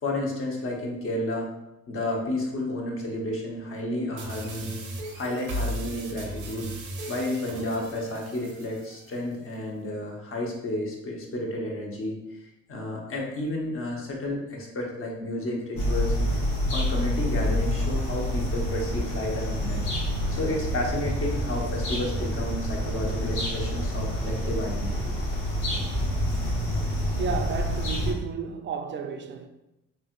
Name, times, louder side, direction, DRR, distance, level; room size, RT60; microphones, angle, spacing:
voice 1, 0.0-1.5 1.9-4.8 5.1-6.7 7.1-12.4 12.7-16.2 16.7-19.8 20.3-25.1, left 1 dB, 45° left, 0.9 m, -31 dB
sound 1, 4.2-9.2, right 1 dB, 90° right, 0.7 m, -36 dB
sound 2, 15.8-28.1, equal, 70° left, 1.0 m, -28 dB
voice 2, 27.2-29.5, right 5 dB, 40° right, 0.4 m, -32 dB
3.2 x 2.8 x 2.5 m
cardioid pair, 90°, 30 cm